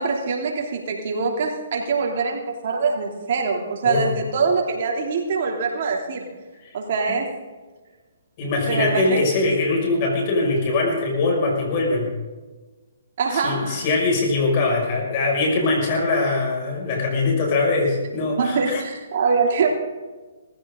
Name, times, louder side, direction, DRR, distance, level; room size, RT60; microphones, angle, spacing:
voice 1, 0.0-6.3 6.7-7.3 8.7-9.2 13.2-13.8 18.4-19.7, right 4 dB, 55° right, 0 dB, 2.9 m, -23 dB
voice 2, 3.8-4.2 6.6-6.7 7.1-7.2 8.4-12.1 13.3-18.8, left 3 dB, 40° left, 0 dB, 6.0 m, -22 dB
19.0 x 15.5 x 3.8 m, 1.3 s
hypercardioid pair, 145°, 0 cm